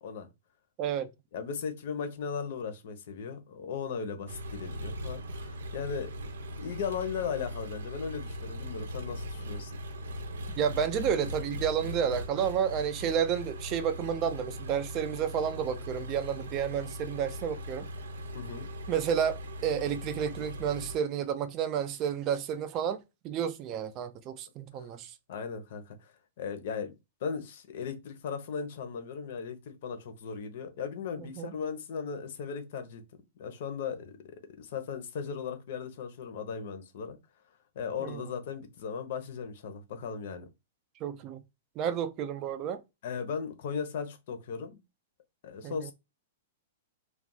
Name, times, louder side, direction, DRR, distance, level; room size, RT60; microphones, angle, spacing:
voice 1, 1.3-6.1 6.6-9.7 18.3-18.7 25.3-26.9 27.2-33.0 33.4-34.2 34.6-37.2 37.8-40.5 43.0-44.8 45.4-45.9, left 6 dB, 55° left, 0.7 m, -37 dB
Engine, 4.3-21.0, equal, 85° right, 0.6 m, -40 dB
voice 2, 10.6-17.9 18.9-25.1 31.2-31.5 38.0-38.2 41.0-41.4 41.8-42.8 45.6-45.9, right 8 dB, 30° right, 0.4 m, -31 dB
2.4 x 2.3 x 3.8 m
hypercardioid pair, 160°, 0 cm